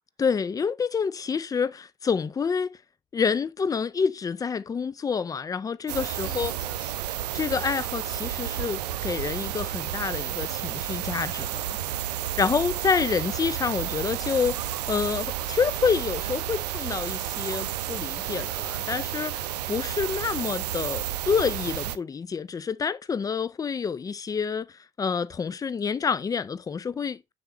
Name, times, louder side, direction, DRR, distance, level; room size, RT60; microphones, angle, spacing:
voice 1, 0.2-2.8 3.1-6.5 7.3-11.8 12.4-27.2, left 6 dB, 15° left, 0.3 m, -28 dB
sound 1, 5.9-22.0, right 12 dB, 75° right, 0.4 m, -31 dB
voice 2, 6.1-7.1 11.8-12.6 19.8-20.3, left 1 dB, 80° left, 3.4 m, -48 dB
6.8 x 5.4 x 3.1 m
figure-of-eight pair, 50°, 21 cm